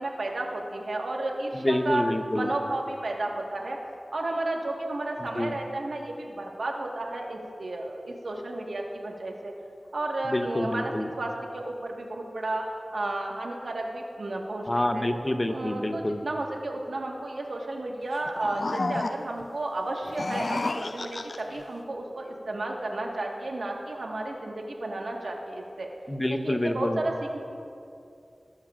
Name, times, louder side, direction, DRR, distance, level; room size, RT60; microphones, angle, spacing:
voice 1, 0.0-2.0 2.3-3.8 4.1-9.5 9.9-10.9 11.2-12.6 12.9-14.7 14.9-15.0 15.5-25.9 26.4-27.4, right 2 dB, 80° right, 0 dB, 1.5 m, -32 dB
voice 2, 1.5-2.5 5.2-5.5 10.2-11.1 14.7-16.2 26.1-27.0, left 1 dB, 30° left, 7 dB, 0.8 m, -27 dB
sound 1, 18.1-19.5 20.0-21.6, left 2 dB, 60° left, 0.3 m, -32 dB
19.5 x 12.0 x 2.5 m, 2.6 s
cardioid pair, 45°, 0 cm